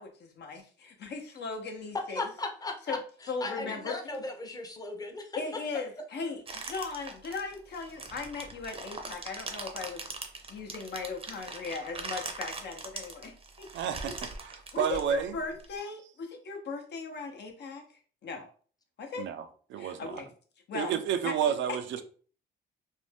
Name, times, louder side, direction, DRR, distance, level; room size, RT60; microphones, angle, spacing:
voice 1, 0.0-2.3 2.9-3.0 3.3-4.2 5.4-10.1 10.5-14.1 14.7-17.9 18.2-18.5 19.0-19.3 19.8-20.3 20.7-20.9 21.2-21.4 21.7-21.8, left 4 dB, 60° left, 0.8 m, -38 dB
voice 2, 2.2-3.0 3.4-5.4, left 3 dB, 20° left, 0.7 m, -36 dB
sound 1, 6.5-15.7, right 3 dB, 30° right, 0.6 m, -41 dB
voice 3, 13.7-14.1 14.4-15.4 19.2-20.2 20.7-22.0, right 9 dB, 70° right, 0.4 m, -31 dB
2.6 x 2.2 x 3.3 m
cardioid pair, 90°, 20 cm